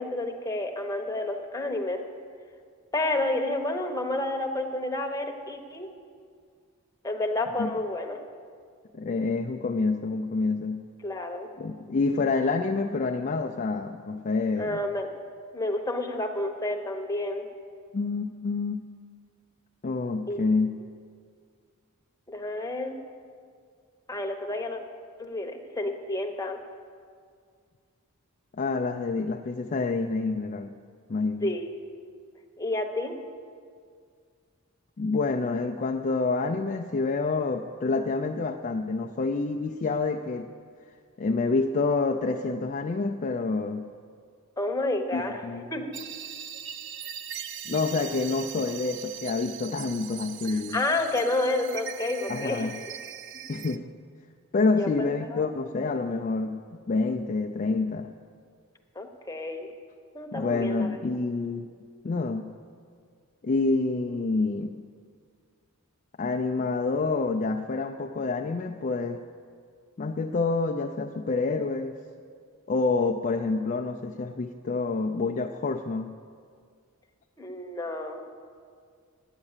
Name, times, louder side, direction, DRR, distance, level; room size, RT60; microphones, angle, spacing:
voice 1, 0.0-2.0 2.9-5.9 7.0-8.2 11.0-11.5 14.6-15.1 15.5-17.5 20.3-20.4 22.3-23.0 24.1-24.8 25.2-26.6 31.4-31.7 32.6-33.1 44.6-45.9 50.5-52.7 54.8-55.5 59.0-59.7 60.1-60.9 77.4-78.2, left 2 dB, 15° left, 3 dB, 0.9 m, -30 dB
voice 2, 8.9-10.8 11.6-14.8 17.9-18.8 19.8-20.8 28.6-30.7 31.1-31.5 35.0-40.5 41.2-43.9 45.1-45.7 47.7-50.8 52.3-52.7 53.5-53.8 54.5-58.1 60.3-61.7 62.0-62.5 63.4-64.8 66.2-69.2 70.0-72.0 72.7-76.1, left 3 dB, 35° left, 2 dB, 0.4 m, -27 dB
sound 1, 45.9-53.8, right 9 dB, 55° right, 0.4 m, -40 dB
11.0 x 8.9 x 7.3 m, 2.1 s
head